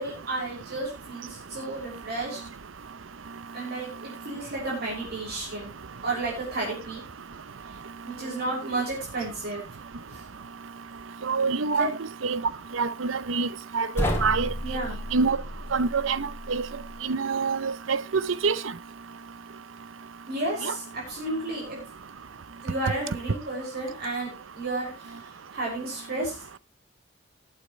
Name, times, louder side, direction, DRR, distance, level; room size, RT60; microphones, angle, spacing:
voice 1, 0.0-2.4 3.5-5.7 6.0-7.0 7.7-7.8 8.0-9.6 10.1-10.2 11.7-11.9 14.6-15.0 20.3-21.8 22.6-26.4, right 2 dB, 55° right, 6.2 m, -32 dB
voice 2, 11.2-11.9 12.2-12.4 12.7-13.5 13.7-14.5 15.1-15.4 15.7-16.7 17.0-18.6 20.6-20.7, right 4 dB, 80° right, 0.7 m, -26 dB
sound 1, 13.9-17.0, equal, 15° left, 3.1 m, -32 dB
20.0 x 8.7 x 3.2 m
head